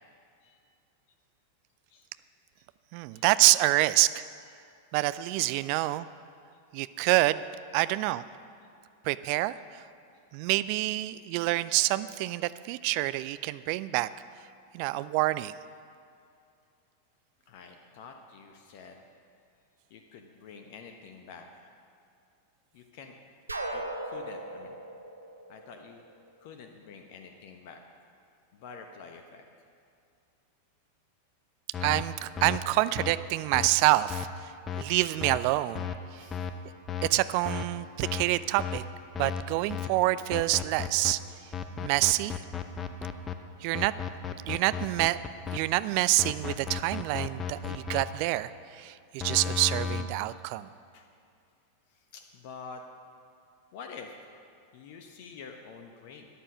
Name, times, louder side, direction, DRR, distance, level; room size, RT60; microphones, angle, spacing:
voice 1, 2.9-4.2 4.9-6.1 6.7-7.4 7.7-8.2 9.0-9.5 10.3-14.1 14.7-15.5 31.8-34.3 34.8-35.9 37.1-38.8 39.2-41.2 41.8-42.3 43.6-43.9 44.5-45.2 45.5-50.7, right 18 dB, 45° right, 15 dB, 0.4 m, -27 dB
voice 2, 17.5-19.0 19.9-21.7 22.7-23.1 23.7-24.8 25.5-26.0 26.4-27.8 28.5-29.4 36.2-36.5 50.9-51.1 52.1-52.8 53.7-54.1 54.7-56.3, left 5 dB, 50° left, 5 dB, 1.0 m, -47 dB
sound 1, 23.5-26.3, right 2 dB, 80° right, 1.0 m, -38 dB
sound 2, 31.7-32.0 32.4-32.6 33.0-33.1 33.5-33.7 34.1-34.2 34.7-34.8 35.2-35.4 35.7-36.0 36.3-36.5 36.9-37.1 37.4-37.6 38.0-38.2 38.6-38.8 39.1-39.4 39.7-39.9 40.3-41.1 41.5-43.3 43.7-45.6 46.2-48.0 49.2-50.0, left 8 dB, 20° left, 0.8 m, -33 dB
13.5 x 10.0 x 6.0 m, 2.4 s
figure-of-eight pair, 90°, 0 cm